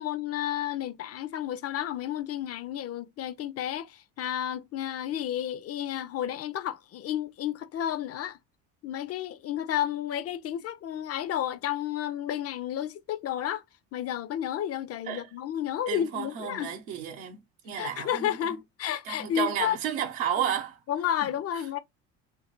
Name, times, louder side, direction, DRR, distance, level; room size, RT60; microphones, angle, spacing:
voice 1, 0.0-8.4 8.8-13.6 13.9-16.7 17.7-19.8 20.9-21.8, left 11 dB, 40° left, 0.4 m, -31 dB
voice 2, 15.9-18.3 19.0-20.8, right 9 dB, 75° right, 0.8 m, -32 dB
2.8 x 2.5 x 2.9 m
supercardioid pair, 75°, 40 cm